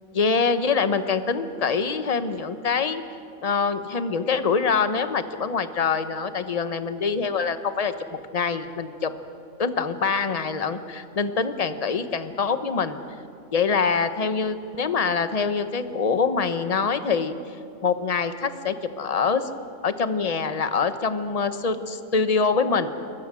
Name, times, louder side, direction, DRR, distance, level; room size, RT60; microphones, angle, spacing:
voice 1, 0.1-3.0 3.4-9.1 9.6-13.0 13.5-17.3 17.8-19.5 19.8-22.9, left 5 dB, 30° left, 10 dB, 1.0 m, -24 dB
28.5 x 22.0 x 6.2 m, 2.5 s
omnidirectional pair, 1.5 m